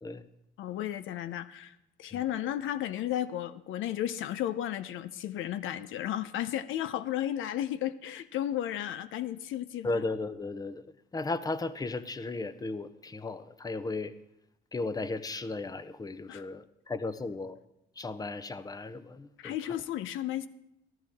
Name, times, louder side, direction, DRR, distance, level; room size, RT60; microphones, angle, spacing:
voice 1, 0.6-10.0 16.3-16.4 19.4-20.5, left 12 dB, 85° left, 13 dB, 0.6 m, -34 dB
voice 2, 9.8-10.8 11.1-14.1 14.7-17.6 18.0-19.5, left 3 dB, 20° left, 13 dB, 0.7 m, -35 dB
14.0 x 13.0 x 3.5 m, 0.84 s
cardioid pair, 90°, 20 cm